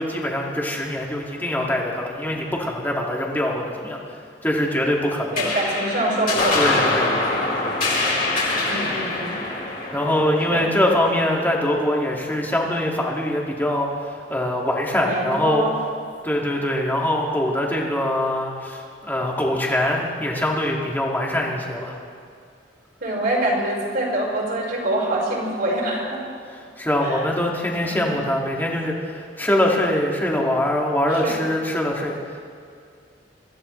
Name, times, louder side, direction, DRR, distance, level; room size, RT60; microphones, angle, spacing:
voice 1, 0.0-4.0 4.4-5.4 6.5-7.1 9.9-15.6 16.2-22.0 26.8-32.2, left 1 dB, 10° left, -2 dB, 2.1 m, -23 dB
sound 1, 5.3-12.1, left 2 dB, 50° left, 4.1 m, -25 dB
voice 2, 5.3-6.9 8.6-9.5 10.5-10.6 15.1-15.7 23.0-26.2 27.0-27.2 27.8-28.1 31.1-31.4, right 1 dB, 60° right, -4 dB, 4.8 m, -25 dB
24.0 x 14.5 x 3.2 m, 2.4 s
head